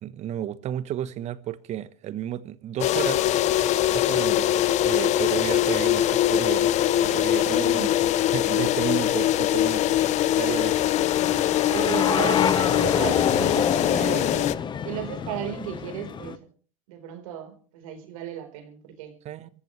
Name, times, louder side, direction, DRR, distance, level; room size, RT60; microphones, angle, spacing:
voice 1, 0.0-3.3 3.9-4.5 4.8-6.7 7.0-10.0 10.4-10.9 19.2-19.5, right 11 dB, 40° right, 1.1 m, -32 dB
sound 1, 2.8-14.5, left 12 dB, 40° left, 0.8 m, -23 dB
voice 2, 7.4-7.9 10.9-11.4 11.7-14.5 14.8-16.4 16.9-19.1, right 10 dB, 75° right, 4.2 m, -34 dB
sound 2, 8.7-16.3, left 7 dB, 25° left, 1.1 m, -28 dB
27.0 x 14.5 x 3.2 m
supercardioid pair, 110°, 17 cm